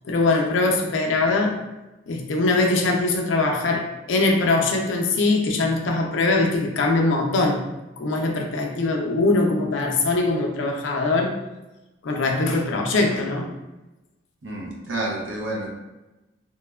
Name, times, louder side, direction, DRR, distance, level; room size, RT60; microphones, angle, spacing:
voice 1, 0.0-1.6 2.1-7.7 8.0-11.3 12.0-13.5, left 2 dB, 80° left, 1 dB, 0.4 m, -22 dB
voice 2, 14.4-15.7, right 2 dB, 80° right, -2 dB, 0.6 m, -29 dB
3.0 x 2.1 x 2.2 m, 1.0 s
head